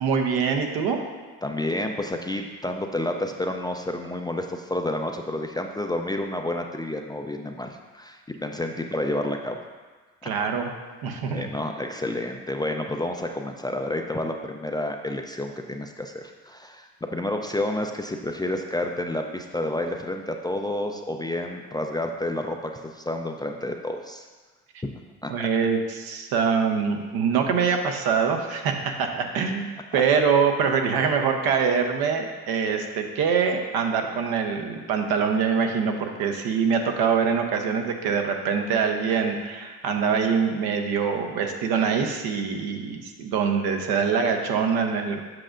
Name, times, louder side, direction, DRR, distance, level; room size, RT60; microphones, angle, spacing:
voice 1, 0.0-1.0 10.2-10.7 11.0-11.4 25.3-45.2, right 6 dB, 70° right, 4 dB, 0.9 m, -24 dB
voice 2, 1.4-7.7 7.9-9.6 10.2-10.3 11.3-24.3 25.2-25.5 29.9-30.0, left 1 dB, 10° left, 3 dB, 0.4 m, -30 dB
7.6 x 6.2 x 2.5 m, 1.3 s
supercardioid pair, 70°, 39 cm